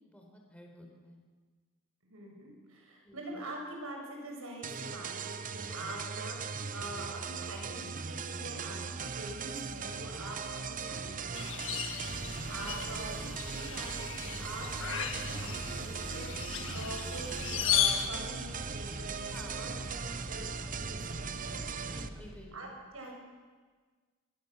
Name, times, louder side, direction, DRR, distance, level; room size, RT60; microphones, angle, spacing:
voice 1, 0.1-1.2 3.0-3.3 12.6-12.8 19.3-19.7 21.9-22.5, equal, 5° left, 1 dB, 4.7 m, -52 dB
voice 2, 2.0-20.0 20.2-23.1, right 1 dB, 70° right, 0 dB, 7.5 m, -45 dB
sound 1, 4.6-22.1, right 5 dB, 40° right, 0.9 m, -39 dB
sound 2, 11.3-18.1, left 9 dB, 60° left, 1.8 m, -35 dB
sound 3, 12.0-22.3, equal, 15° right, 2.8 m, -46 dB
25.0 x 21.5 x 7.6 m, 1.5 s
head